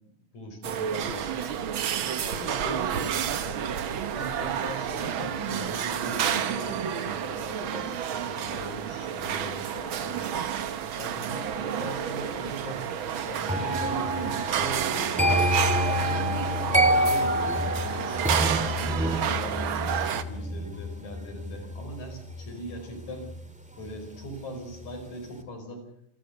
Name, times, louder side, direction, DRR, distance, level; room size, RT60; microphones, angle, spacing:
voice 1, 0.3-1.7 2.2-3.7 4.1-10.5 11.0-12.9 13.3-15.3 15.9-23.3 23.8-25.9, equal, 60° left, 5 dB, 6.2 m, -40 dB
sound 1, 0.6-20.2, right 8 dB, 70° right, 1.2 m, -30 dB
sound 2, 13.5-24.4 24.7-25.1, equal, 5° right, 1.5 m, -28 dB
27.5 x 14.5 x 6.8 m, 0.74 s
omnidirectional pair, 3.8 m